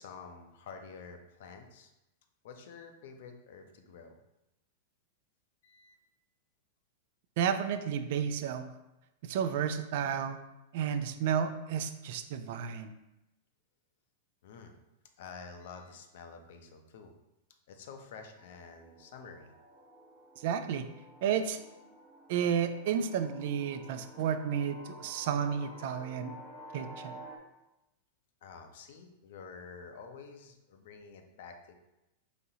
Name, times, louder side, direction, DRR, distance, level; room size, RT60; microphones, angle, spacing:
voice 1, 0.0-1.9 2.4-4.2 5.6-6.0 14.4-14.7 15.2-17.1 17.7-19.5 28.4-31.7, left 5 dB, 65° left, 6 dB, 0.5 m, -49 dB
voice 2, 7.4-8.7 9.2-10.4 10.7-12.9 20.4-20.8 21.2-21.6 22.3-26.4 26.7-27.2, right 8 dB, 60° right, 9 dB, 0.3 m, -32 dB
sound 1, 18.4-27.4, equal, 25° right, 0.8 m, -51 dB
4.1 x 2.8 x 2.7 m, 0.93 s
hypercardioid pair, 105°, 0 cm